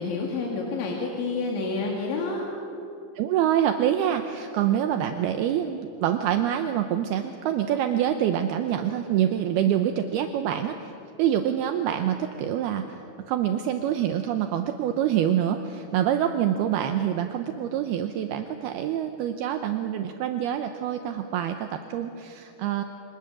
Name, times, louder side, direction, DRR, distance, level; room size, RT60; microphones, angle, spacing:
voice 1, 0.0-2.5, left 3 dB, 90° left, -1 dB, 4.8 m, -29 dB
voice 2, 3.2-10.9 11.2-12.9 13.3-22.8, right 10 dB, 75° right, 7 dB, 2.5 m, -26 dB
29.0 x 24.5 x 7.4 m, 2.8 s
omnidirectional pair, 5.2 m